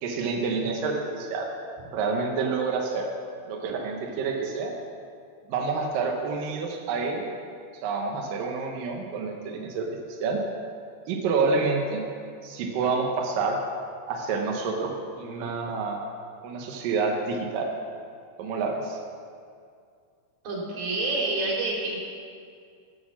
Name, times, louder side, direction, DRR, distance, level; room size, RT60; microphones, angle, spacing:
voice 1, 0.0-1.5 1.9-3.1 3.5-4.7 5.5-7.3 7.8-10.4 11.1-12.0 12.4-13.6 14.1-16.0 16.4-17.7 18.4-19.0, right 4 dB, 75° right, 1 dB, 2.0 m, -28 dB
voice 2, 20.4-22.1, right 2 dB, 50° right, -3 dB, 4.3 m, -28 dB
12.5 x 9.5 x 7.4 m, 2.3 s
omnidirectional pair, 5.5 m